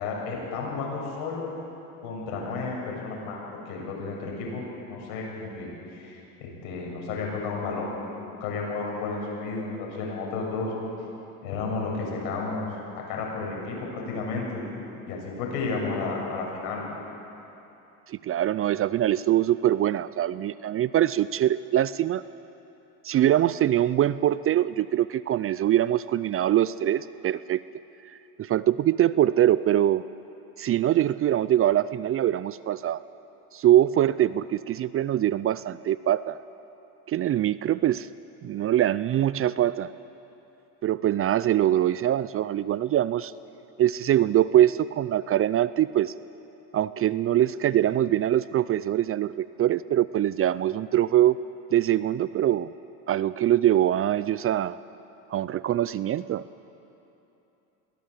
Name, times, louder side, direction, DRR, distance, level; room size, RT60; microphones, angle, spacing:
voice 1, 0.0-1.5 2.0-7.9 8.4-10.7 11.4-12.7 12.9-14.6 15.1-16.8, left 4 dB, 70° left, -1 dB, 7.1 m, -32 dB
voice 2, 18.1-22.2 23.0-27.6 28.4-30.0 30.6-33.0 33.5-36.4 37.1-38.1 38.4-39.9 40.8-43.3 43.8-46.1 46.7-51.4 51.7-52.7 53.1-54.8 55.3-56.4, right 12 dB, 30° right, 17 dB, 0.5 m, -23 dB
22.5 x 17.5 x 8.2 m, 3.0 s
hypercardioid pair, 85°, 44 cm